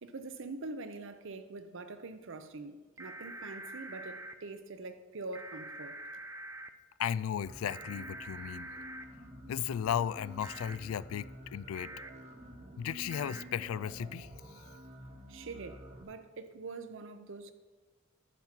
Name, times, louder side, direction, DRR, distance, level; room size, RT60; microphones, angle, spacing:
voice 1, 0.0-6.0 15.3-17.5, right 3 dB, 65° right, 0.7 m, -44 dB
sound 1, 3.0-4.3 5.3-6.7 7.7-9.0 10.4-10.8 11.7-12.1 13.1-13.4, right 1 dB, 15° right, 0.4 m, -45 dB
voice 2, 7.0-8.7 9.5-11.9 12.8-14.3, left 9 dB, 85° left, 0.3 m, -35 dB
sound 2, 7.4-16.0, equal, 35° right, 1.1 m, -50 dB
11.5 x 7.2 x 4.5 m
head